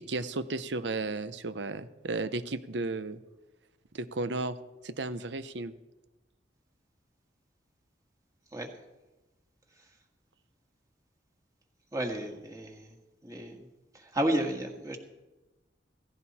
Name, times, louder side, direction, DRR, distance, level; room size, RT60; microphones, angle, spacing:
voice 1, 0.0-3.2 3.9-4.6 4.8-5.7, right 3 dB, 80° right, 13 dB, 0.9 m, -34 dB
voice 2, 11.9-13.0 13.2-13.7 13.9-15.0, right 1 dB, 20° right, 3 dB, 1.8 m, -32 dB
16.5 x 15.5 x 4.3 m, 1.1 s
head